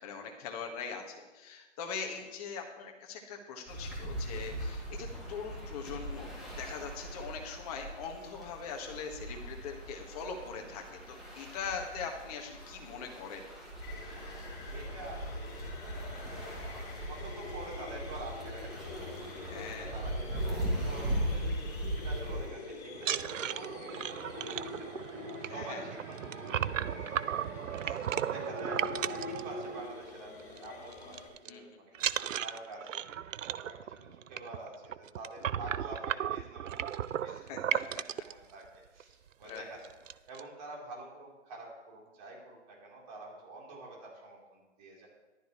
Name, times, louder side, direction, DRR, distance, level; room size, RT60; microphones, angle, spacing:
voice 1, 0.0-13.4 19.5-19.9 25.5-25.8 27.8-28.3 31.5-31.6 37.2-38.2 39.4-39.7, left 6 dB, 30° left, 2 dB, 1.7 m, -42 dB
sound 1, 3.7-22.5, right 1 dB, ahead, 2.2 m, -39 dB
sound 2, 13.8-31.3, left 3 dB, 50° left, 4.2 m, -45 dB
voice 2, 14.7-27.5 28.2-33.0 33.4-34.7 35.1-37.4 37.6-38.7 38.9-39.9 40.3-45.1, right 2 dB, 35° right, -3 dB, 3.8 m, -48 dB
sound 3, 22.9-30.1 30.4-30.7 30.9-31.5 31.9-38.3 39.0-39.1 39.4-39.6 39.8-40.4, right 9 dB, 90° right, 0.5 m, -35 dB
14.5 x 12.0 x 3.2 m, 1.2 s
hypercardioid pair, 145°, 37 cm